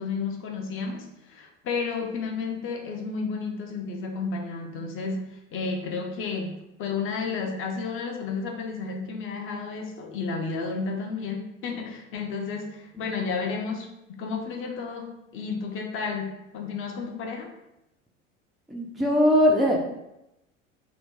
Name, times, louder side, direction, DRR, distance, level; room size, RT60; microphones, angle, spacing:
voice 1, 0.0-17.5, left 4 dB, 35° left, 3 dB, 0.6 m, -32 dB
voice 2, 18.7-19.9, equal, ahead, -1 dB, 0.3 m, -21 dB
2.9 x 2.2 x 3.6 m, 0.88 s
figure-of-eight pair, 75°, 37 cm